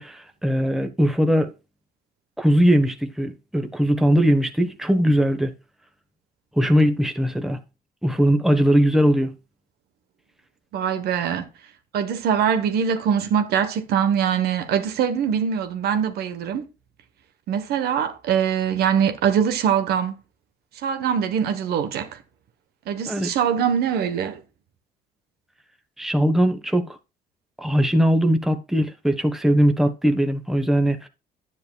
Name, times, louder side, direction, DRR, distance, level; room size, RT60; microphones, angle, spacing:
voice 1, 0.0-1.5 2.4-5.5 6.6-7.6 8.0-9.3 23.1-23.3 26.0-27.0 27.6-31.1, equal, ahead, 1.2 m, -20 dB
voice 2, 10.7-11.5 11.9-16.7 17.5-20.1 20.8-22.2 22.9-24.4, right 8 dB, 70° right, 1.2 m, -23 dB
10.5 x 9.6 x 2.3 m
cardioid pair, 110°, 17 cm